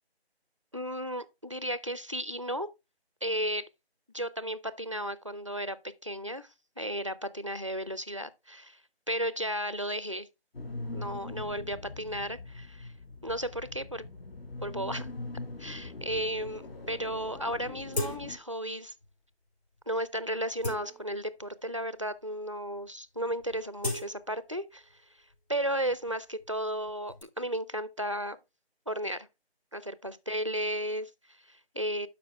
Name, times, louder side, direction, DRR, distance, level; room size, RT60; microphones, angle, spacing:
voice 1, 0.7-2.7 3.2-3.7 4.1-5.8 6.0-6.5 6.8-8.8 9.1-10.3 10.9-12.9 13.2-14.0 14.6-15.1 15.6-16.6 16.9-18.9 19.9-25.0 25.5-28.4 28.9-29.3 29.7-32.1, equal, 30° right, 0.4 m, -34 dB
sound 1, 10.5-18.4, left 2 dB, 60° left, 2.3 m, -42 dB
sound 2, 17.9-18.6 19.0-19.1 19.8-19.9 20.3-21.5 22.2-22.3 22.5-22.9 23.2-25.0 25.3-27.2, left 1 dB, 85° left, 4.8 m, -39 dB
11.5 x 5.1 x 3.4 m
figure-of-eight pair, 170°, 32 cm